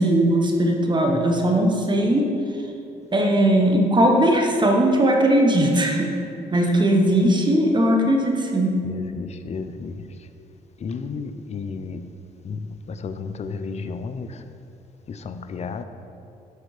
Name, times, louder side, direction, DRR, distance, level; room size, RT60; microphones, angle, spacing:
voice 1, 0.0-2.3 3.1-6.1 6.5-8.8, right 1 dB, 30° right, 1 dB, 1.3 m, -19 dB
voice 2, 8.9-10.0 10.8-12.0 12.4-12.6 13.0-14.3 15.1-15.8, left 5 dB, 45° left, 9 dB, 0.6 m, -32 dB
11.5 x 4.3 x 5.0 m, 2.6 s
cardioid pair, 75°, 15 cm